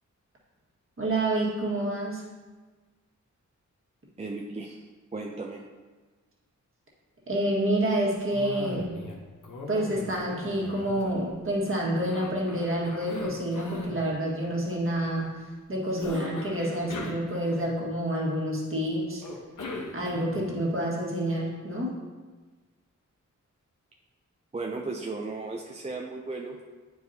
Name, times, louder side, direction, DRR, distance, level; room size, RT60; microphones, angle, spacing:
voice 1, 1.0-2.2 7.3-9.0 9.7-15.4 15.7-19.2 19.9-22.0, right 1 dB, 45° right, -4 dB, 1.6 m, -28 dB
voice 2, 4.2-5.6 24.5-26.6, right 3 dB, 20° right, 0 dB, 0.4 m, -35 dB
Cough, 8.3-9.2 9.4-11.5 12.0-14.0 16.0-18.0 19.2-20.5, left 3 dB, 75° left, 0.9 m, -39 dB
9.4 x 4.7 x 2.7 m, 1.3 s
wide cardioid pair, 125°, 31 cm